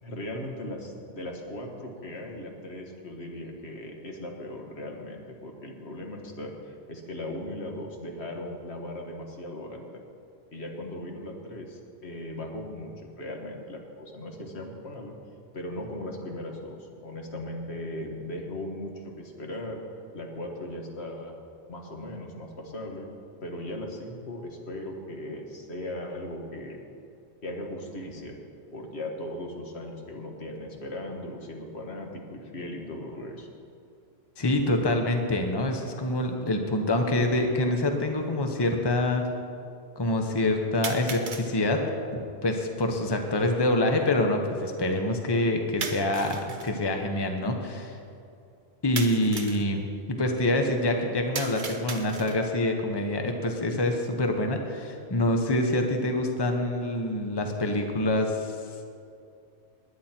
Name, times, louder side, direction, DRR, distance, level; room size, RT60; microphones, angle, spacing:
voice 1, 0.0-9.9 10.5-15.2 15.5-18.9 19.2-19.8 20.1-21.4 21.7-23.1 23.4-26.8 27.4-28.4 28.7-33.5, left 1 dB, 70° left, 2 dB, 1.8 m, -38 dB
voice 2, 34.4-39.3 40.0-41.9 42.4-48.0 48.8-49.8 50.1-58.6, left 1 dB, 25° left, 4 dB, 1.0 m, -26 dB
sound 1, 36.5-36.6 37.5-37.6 40.8-41.5 45.8-46.7 49.0-49.7 51.3-52.5, right 4 dB, 50° right, 1.1 m, -36 dB
20.0 x 9.4 x 4.5 m, 2.5 s
omnidirectional pair, 1.1 m